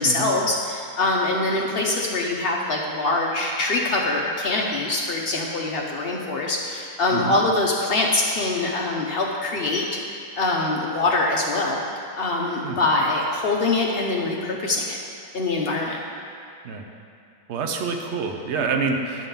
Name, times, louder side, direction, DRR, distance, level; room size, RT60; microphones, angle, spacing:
voice 1, 0.0-9.9 10.4-11.8 12.2-15.0 15.3-16.0, left 2 dB, 80° left, -1 dB, 0.5 m, -23 dB
voice 2, 17.5-19.3, right 4 dB, 60° right, 3 dB, 0.7 m, -27 dB
10.5 x 3.8 x 6.9 m, 2.5 s
omnidirectional pair, 2.0 m